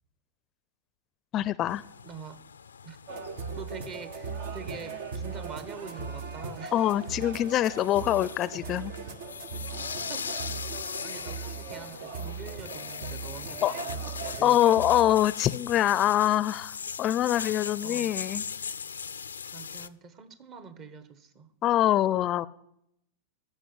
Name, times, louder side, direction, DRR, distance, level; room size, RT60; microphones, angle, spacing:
voice 1, 1.3-1.8 6.7-8.9 13.6-13.7 14.4-18.4 21.6-22.5, left 12 dB, 35° left, 19 dB, 0.5 m, -24 dB
sound 1, 1.7-19.9, left 6 dB, 85° left, 0.4 m, -40 dB
voice 2, 2.0-2.4 2.8-3.0 3.5-6.9 9.5-9.7 9.9-10.5 11.0-14.6 17.8-18.2 19.5-21.5, right 6 dB, 40° right, 12 dB, 1.4 m, -45 dB
sound 2, 3.1-15.1, right 5 dB, 65° right, 1.3 m, -38 dB
14.5 x 6.9 x 8.5 m, 0.76 s
hypercardioid pair, 100°, 0 cm